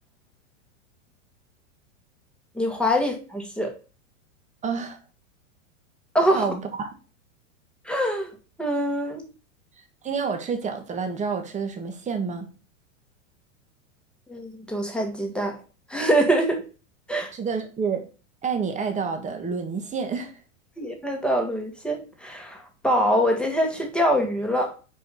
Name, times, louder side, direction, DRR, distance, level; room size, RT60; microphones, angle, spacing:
voice 1, 2.5-3.7 6.1-6.4 7.8-8.3 8.6-9.2 14.3-15.6 15.9-16.6 17.1-17.3 20.8-24.7, equal, ahead, 1.6 m, -24 dB
voice 2, 4.6-5.0 6.3-6.9 10.0-12.5 17.3-18.0 18.4-20.4, right 5 dB, 20° right, 1.4 m, -28 dB
5.0 x 4.6 x 5.3 m
hypercardioid pair, 120°, 39 cm